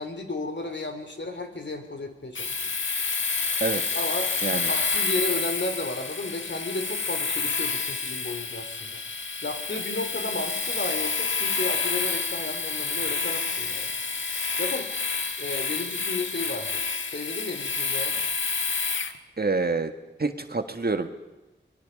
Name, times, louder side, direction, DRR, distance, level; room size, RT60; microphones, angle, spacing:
voice 1, 0.0-2.6 3.9-4.3 4.6-9.0 9.4-14.0 14.6-14.9 15.4-16.8 17.1-18.2, left 2 dB, 70° left, 5 dB, 3.3 m, -33 dB
Domestic sounds home sounds, 2.3-19.2, left 4 dB, 85° left, 1.3 m, -29 dB
voice 2, 19.4-19.9 20.2-21.1, right 3 dB, 55° right, 7 dB, 1.7 m, -26 dB
26.0 x 21.0 x 5.3 m, 1.0 s
wide cardioid pair, 60°, 19 cm